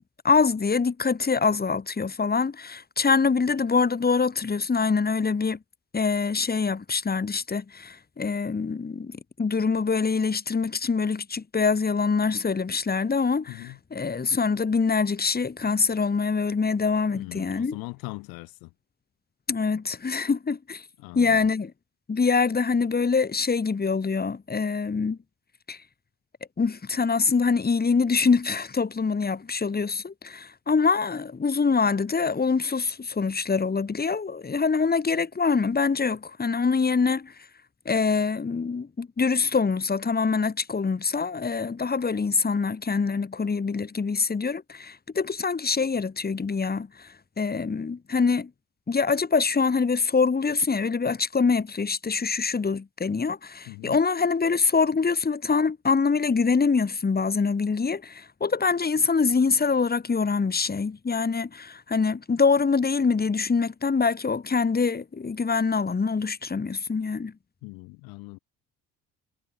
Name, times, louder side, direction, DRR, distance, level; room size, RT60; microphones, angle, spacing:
voice 1, 0.2-5.6 5.9-17.8 19.5-20.8 21.1-21.7 22.1-25.2 25.7-25.8 26.6-37.3 37.9-46.9 47.4-48.5 48.9-67.3, left 5 dB, 25° left, 4.4 m, -24 dB
voice 2, 13.5-13.8 17.1-18.7 21.0-21.5 53.7-54.0 67.6-68.4, left 26 dB, 90° left, 4.1 m, -40 dB
supercardioid pair, 90°, 34 cm